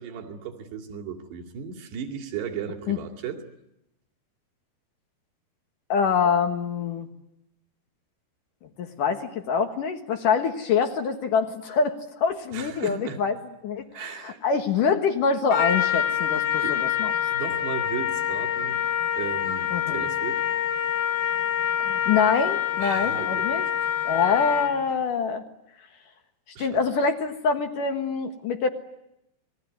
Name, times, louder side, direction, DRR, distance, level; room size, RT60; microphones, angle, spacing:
voice 1, 0.0-3.4 12.5-13.2 13.9-14.4 16.5-16.8 17.3-18.8 19.2-20.4 22.8-23.5 26.6-26.7, right 7 dB, 75° right, 4 dB, 4.5 m, -35 dB
voice 2, 5.9-7.1 8.8-13.4 13.6-17.1 19.7-20.0 21.8-23.7 24.0-25.4 26.6-28.7, left 5 dB, 60° left, 5 dB, 2.8 m, -25 dB
Trumpet, 15.5-24.9, left 10 dB, 80° left, 3.7 m, -26 dB
28.5 x 21.0 x 9.4 m, 0.83 s
omnidirectional pair, 4.9 m